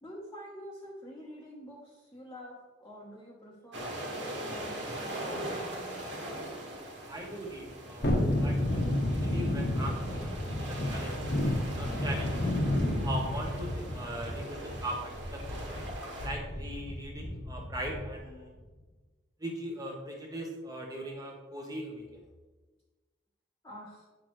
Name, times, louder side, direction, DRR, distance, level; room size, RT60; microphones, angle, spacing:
voice 1, 0.0-3.9 4.5-6.1 23.6-24.1, equal, 15° left, -6 dB, 1.1 m, -47 dB
sound 1, 3.7-16.3, right 1 dB, 60° right, 1.8 m, -41 dB
voice 2, 7.1-12.4 13.0-15.8 16.2-18.5 19.4-22.2, right 1 dB, 20° right, 0 dB, 1.2 m, -40 dB
Thunderstorm, 8.0-18.2 18.6-18.7, left 1 dB, 50° left, 1.1 m, -31 dB
9.1 x 6.3 x 3.2 m, 1.3 s
head